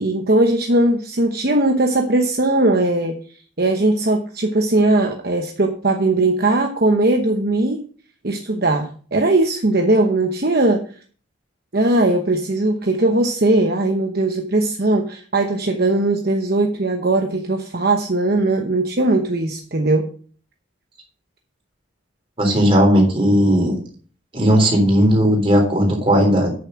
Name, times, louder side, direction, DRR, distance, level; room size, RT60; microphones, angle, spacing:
voice 1, 0.0-7.8 8.2-10.8 11.7-20.1, right 2 dB, 50° right, 3 dB, 1.0 m, -19 dB
voice 2, 22.4-23.8 24.3-26.5, equal, 25° right, 1 dB, 3.8 m, -16 dB
9.0 x 6.9 x 6.4 m, 0.43 s
head